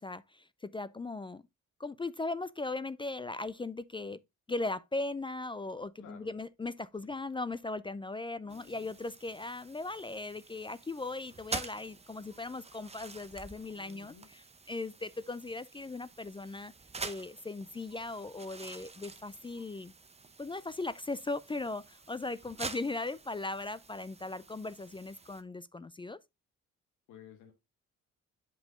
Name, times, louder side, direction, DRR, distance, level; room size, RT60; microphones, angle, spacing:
voice 1, 0.0-1.4 1.8-4.2 4.5-14.4 14.7-16.7 17.0-19.9 20.4-26.2, left 2 dB, 15° left, 0.4 m, -38 dB
voice 2, 6.0-6.3 6.9-7.1 8.4-9.0 13.7-14.3 27.1-27.5, left 8 dB, 85° left, 1.7 m, -55 dB
sound 1, 8.5-25.4, right 4 dB, 20° right, 1.0 m, -47 dB
8.0 x 5.5 x 3.6 m
cardioid pair, 90°, 30 cm